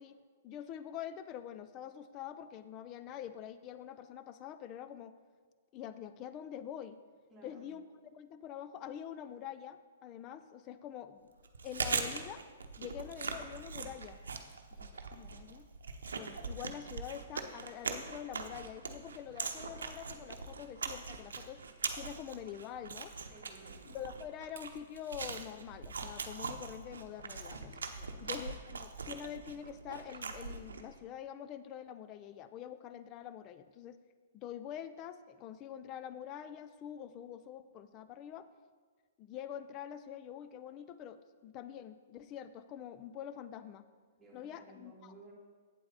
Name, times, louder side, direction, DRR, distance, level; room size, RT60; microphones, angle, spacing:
voice 1, 0.0-5.1 5.7-7.0 7.4-11.3 11.6-12.4 12.8-14.2 14.8-15.7 16.1-21.6 21.9-23.1 23.8-27.9 28.2-34.0 34.3-38.5 39.2-43.8 44.3-45.1, left 9 dB, 30° left, 12 dB, 0.5 m, -46 dB
voice 2, 7.3-7.7 23.3-23.9 27.9-28.2 44.2-45.3, right 2 dB, 5° right, -7 dB, 2.6 m, -57 dB
Chewing mastication, 11.4-31.0, right 4 dB, 90° right, 0.7 m, -41 dB
8.5 x 7.7 x 4.0 m, 1.5 s
hypercardioid pair, 135°, 0 cm